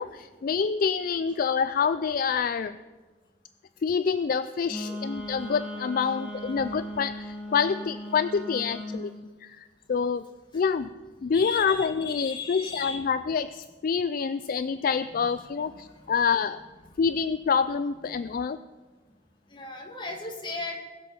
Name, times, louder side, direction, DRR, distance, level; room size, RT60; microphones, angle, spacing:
voice 1, 0.0-2.8 3.8-9.1 9.4-10.2 10.5-10.9 11.2-16.6 17.0-18.6, left 6 dB, 50° left, 13 dB, 0.4 m, -27 dB
voice 2, 4.4-5.2 6.0-6.2 6.5-6.6 8.9-9.0 10.5-10.6 11.2-13.1 15.3-16.4 16.8-17.2 18.1-18.3 19.5-20.8, left 4 dB, 25° left, 0 dB, 2.3 m, -39 dB
Wind instrument woodwind instrument, 4.7-9.1, equal, 5° right, 1.7 m, -37 dB
21.0 x 7.5 x 5.5 m, 1.3 s
head